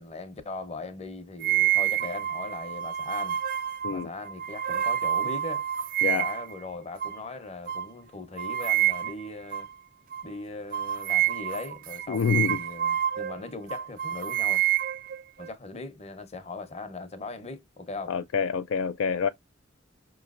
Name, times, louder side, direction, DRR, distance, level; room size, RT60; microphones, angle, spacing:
voice 1, 0.0-3.4 3.9-5.6 6.1-9.7 10.2-14.6 15.4-18.2, left 3 dB, 30° left, 0.8 m, -39 dB
sound 1, 1.4-6.5 7.0-7.2 7.7-7.9 8.4-9.3 9.5-9.7 10.1-10.3 10.7-13.4 13.7-15.5, right 11 dB, 45° right, 0.3 m, -28 dB
voice 2, 12.1-12.6 18.1-19.3, left 6 dB, 70° left, 0.3 m, -26 dB
5.6 x 3.1 x 2.4 m
head